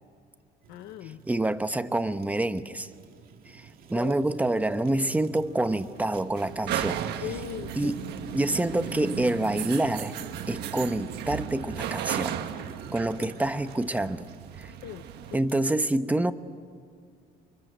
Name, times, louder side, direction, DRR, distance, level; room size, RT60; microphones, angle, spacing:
Fire, 0.6-15.8, right 6 dB, 60° right, 2.3 m, -49 dB
voice 1, 0.7-1.2 3.9-4.2 7.2-8.0 13.2-13.3 14.8-15.5, left 11 dB, 90° left, 8 dB, 0.9 m, -39 dB
voice 2, 1.3-2.9 3.5-3.6 3.9-7.0 7.8-8.0 8.3-10.1 10.5-12.4 12.9-14.3 15.3-16.3, right 1 dB, 10° right, 10 dB, 1.0 m, -27 dB
sound 1, 4.7-15.4, right 9 dB, 75° right, 1.5 m, -36 dB
29.5 x 24.0 x 7.9 m, 2.3 s
cardioid pair, 110°, 17 cm